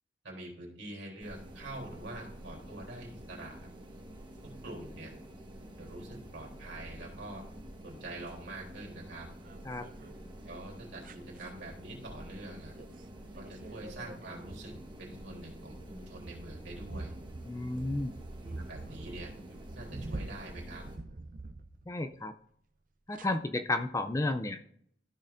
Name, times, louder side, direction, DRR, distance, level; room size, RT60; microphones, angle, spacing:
voice 1, 0.2-3.7 4.6-5.1 5.8-7.4 7.8-9.3 10.4-12.7 13.3-14.7 15.0-17.1 18.5-19.3 19.7-20.8, right 1 dB, 75° right, -2 dB, 3.3 m, -45 dB
sound 1, 1.2-21.0, right 1 dB, 25° right, 1.3 m, -48 dB
sound 2, 9.2-10.1 11.0-11.5 12.8-13.0 13.3-22.2 23.1-23.3, right 2 dB, 45° right, 0.6 m, -45 dB
voice 2, 17.4-18.1 21.9-22.3 23.1-24.6, left 2 dB, 15° left, 9 dB, 0.4 m, -32 dB
13.5 x 6.5 x 2.6 m, 0.66 s
head